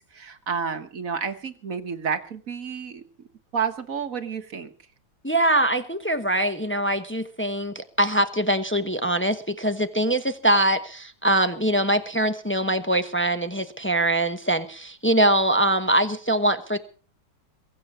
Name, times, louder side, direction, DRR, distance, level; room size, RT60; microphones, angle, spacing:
voice 1, 0.1-3.0 3.5-4.7, right 6 dB, 45° right, 9 dB, 1.6 m, -30 dB
voice 2, 5.2-16.8, right 1 dB, 10° left, 8 dB, 0.5 m, -23 dB
23.0 x 7.8 x 7.3 m, 0.40 s
omnidirectional pair, 2.2 m